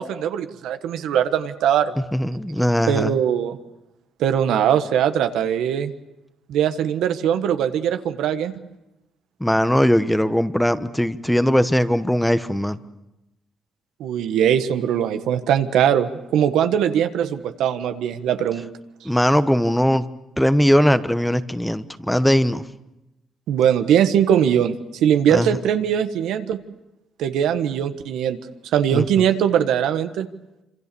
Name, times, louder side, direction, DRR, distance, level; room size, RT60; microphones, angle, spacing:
voice 1, 0.0-1.9 2.9-3.6 4.2-5.9 6.5-8.6 14.0-18.7 23.5-24.7 25.0-26.6 27.2-28.4 28.7-30.3, right 9 dB, 85° right, 9 dB, 1.4 m, -21 dB
voice 2, 2.1-3.2 9.4-12.8 19.0-20.1 20.4-22.6 25.3-25.6 28.9-29.2, equal, 5° left, 12 dB, 1.0 m, -20 dB
26.0 x 26.0 x 7.0 m, 0.93 s
cardioid pair, 90°, 0 cm